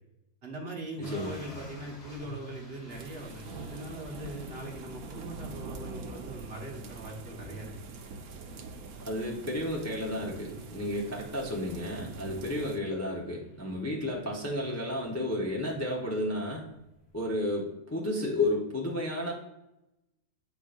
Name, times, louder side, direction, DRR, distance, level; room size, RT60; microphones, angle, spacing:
voice 1, 0.4-7.7, right 1 dB, 45° right, -1 dB, 1.4 m, -41 dB
sound 1, 1.0-17.5, left 2 dB, 40° left, 1.7 m, -52 dB
voice 2, 1.0-1.3 9.0-16.6 17.1-19.3, left 1 dB, 15° left, -3 dB, 0.8 m, -32 dB
sound 2, 2.9-12.8, right 4 dB, 75° right, 1.1 m, -44 dB
8.4 x 4.6 x 2.5 m, 0.90 s
omnidirectional pair, 1.6 m